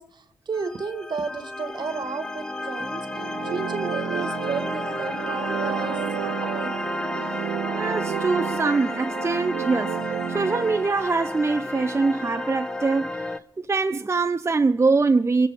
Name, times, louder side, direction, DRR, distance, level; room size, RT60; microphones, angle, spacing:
voice 1, 0.0-3.2 3.5-6.0 6.4-6.8, right 4 dB, 55° right, 1.5 m, -33 dB
sound 1, 0.5-13.4, left 1 dB, 10° left, 0.9 m, -32 dB
sound 2, 3.0-10.9, right 10 dB, 85° right, 0.5 m, -32 dB
voice 2, 7.7-10.0 10.3-13.1 13.6-15.5, right 4 dB, 30° right, 0.6 m, -23 dB
22.5 x 8.2 x 5.0 m
cardioid pair, 55°, 9 cm